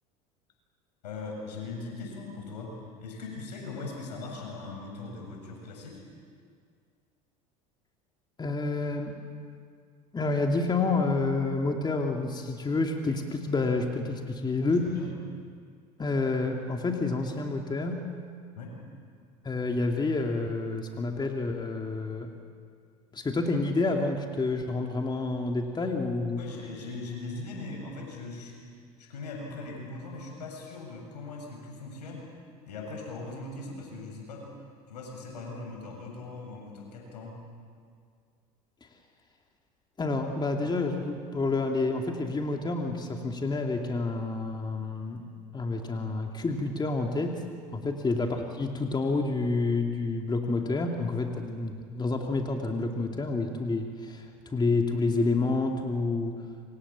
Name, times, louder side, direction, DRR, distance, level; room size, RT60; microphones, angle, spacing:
voice 1, 1.0-6.0 14.6-15.1 18.5-18.8 26.4-28.7 29.0-32.3 32.7-34.5 34.9-37.4 47.8-47.9, left 3 dB, 80° left, 0 dB, 7.7 m, -40 dB
voice 2, 8.4-9.2 10.1-14.9 16.0-18.0 19.4-22.3 23.1-26.4 38.8-38.9 40.0-45.2 45.5-47.4 47.7-56.5, left 3 dB, 20° left, 2 dB, 2.8 m, -29 dB
28.0 x 25.0 x 7.4 m, 2.2 s
hypercardioid pair, 80°, 21 cm